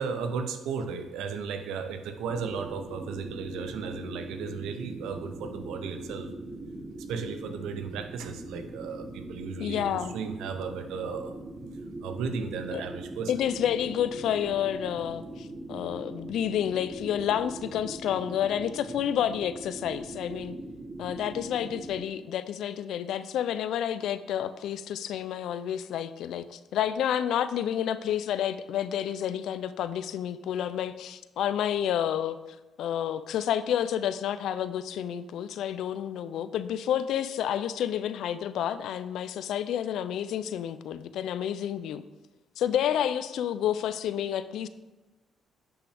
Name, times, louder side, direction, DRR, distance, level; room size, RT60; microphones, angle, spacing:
voice 1, 0.0-6.3 7.0-11.3 12.0-13.3, right 5 dB, 90° right, 7 dB, 0.7 m, -35 dB
sound 1, 2.3-22.0, right 2 dB, 25° right, 1.1 m, -41 dB
voice 2, 9.6-10.2 12.7-12.8 13.3-20.6 21.0-32.4 32.8-42.0 42.6-44.7, left 10 dB, 80° left, 13 dB, 0.4 m, -30 dB
10.0 x 5.8 x 3.5 m, 1.1 s
cardioid pair, 90°, 0 cm